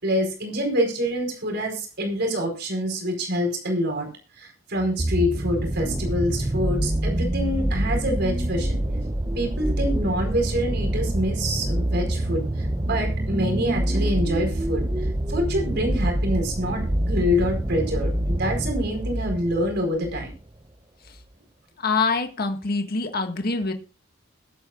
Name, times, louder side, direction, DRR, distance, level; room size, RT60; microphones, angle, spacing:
voice 1, 0.0-4.1 4.4-8.8 9.3-12.5 12.8-14.8 15.3-20.3, equal, 55° right, 4 dB, 4.8 m, -26 dB
sound 1, 4.8-20.4 21.2-21.3, right 1 dB, 20° right, 0.8 m, -26 dB
voice 2, 21.8-23.7, left 4 dB, 50° left, 5 dB, 1.8 m, -25 dB
21.5 x 9.0 x 2.5 m, 0.33 s
head